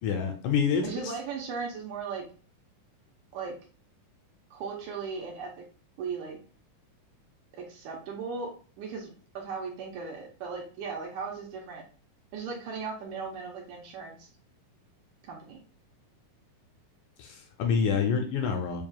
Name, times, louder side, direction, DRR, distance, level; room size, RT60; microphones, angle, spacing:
voice 1, 0.0-1.1 17.2-18.8, left 6 dB, 80° left, 4 dB, 1.8 m, -27 dB
voice 2, 0.8-2.3 3.3-3.6 4.5-5.7 6.0-6.4 7.6-9.1 9.3-11.8 12.3-14.3 15.2-15.6, right 5 dB, 75° right, -1 dB, 2.0 m, -37 dB
7.1 x 2.4 x 2.3 m, 0.40 s
omnidirectional pair, 3.8 m